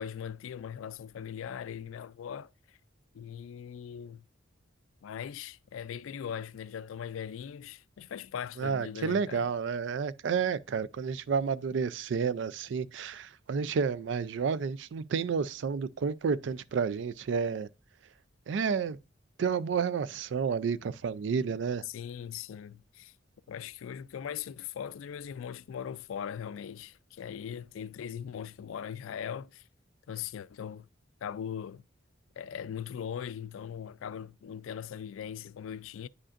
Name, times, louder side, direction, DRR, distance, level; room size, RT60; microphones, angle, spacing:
voice 1, 0.0-2.8 3.1-4.3 5.0-9.5 21.8-23.1 23.5-29.6 30.1-30.9 31.2-31.8 32.4-36.1, left 8 dB, 90° left, 0.3 m, -40 dB
voice 2, 8.6-17.7 18.5-19.0 19.4-21.8, right 6 dB, 70° right, 0.3 m, -30 dB
9.7 x 5.0 x 2.4 m
head